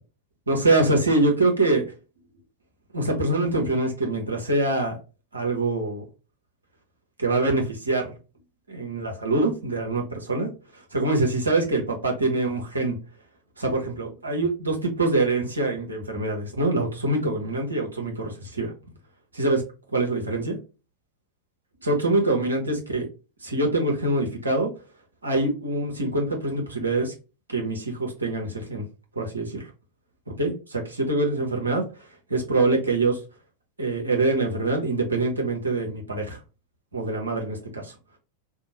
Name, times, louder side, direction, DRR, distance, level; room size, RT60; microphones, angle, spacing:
voice 1, 0.5-1.8 2.9-5.0 5.3-6.0 7.2-8.1 8.7-10.5 10.7-13.0 13.6-18.7 19.3-19.6 19.9-20.6 21.8-23.1 23.4-24.7 25.2-27.1 27.5-28.8 29.1-29.7 30.3-33.2 33.8-36.4 36.9-37.9, right 2 dB, 75° right, 0 dB, 1.0 m, -24 dB
2.8 x 2.1 x 4.0 m, 0.31 s
figure-of-eight pair, 90°, 0 cm